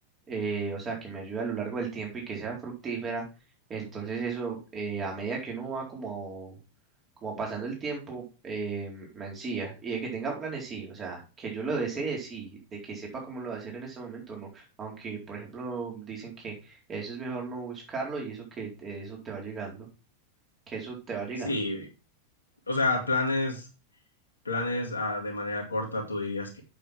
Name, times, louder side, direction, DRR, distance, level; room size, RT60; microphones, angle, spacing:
voice 1, 0.3-3.2 3.7-6.6 7.2-19.9 20.7-21.7, right 4 dB, 25° right, -1 dB, 4.2 m, -35 dB
voice 2, 21.4-21.9 22.7-23.7 24.4-26.6, left 2 dB, 80° left, -1 dB, 2.2 m, -29 dB
8.2 x 6.8 x 4.6 m, 0.32 s
figure-of-eight pair, 90°, 0 cm